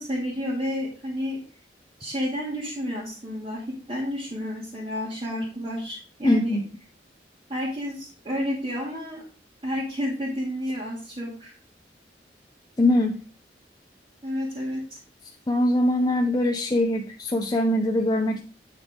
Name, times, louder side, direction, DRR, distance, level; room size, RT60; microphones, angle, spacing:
voice 1, 0.0-1.4 2.0-6.6 7.5-9.2 9.6-11.5 14.2-15.0, equal, 30° right, -6 dB, 2.6 m, -30 dB
voice 2, 6.2-6.7 12.8-13.2 15.5-18.4, left 1 dB, 25° left, 2 dB, 0.6 m, -22 dB
8.3 x 6.8 x 3.7 m, 0.41 s
head